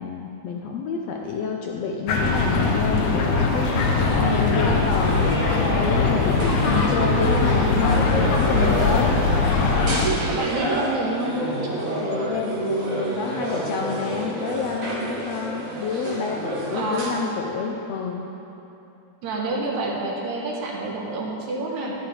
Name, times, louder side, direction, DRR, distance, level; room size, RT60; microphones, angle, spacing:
voice 1, 0.0-9.1 12.0-18.3, left 5 dB, 85° left, 1 dB, 1.4 m, -28 dB
sound 1, 2.1-10.1, left 4 dB, 65° left, 1.5 m, -21 dB
sound 2, 3.7-17.1, right 1 dB, 50° right, 1.0 m, -29 dB
voice 2, 10.3-11.4 16.7-17.2 19.2-22.0, right 2 dB, 70° right, -2 dB, 2.3 m, -28 dB
11.5 x 11.0 x 3.3 m, 2.9 s
omnidirectional pair, 3.6 m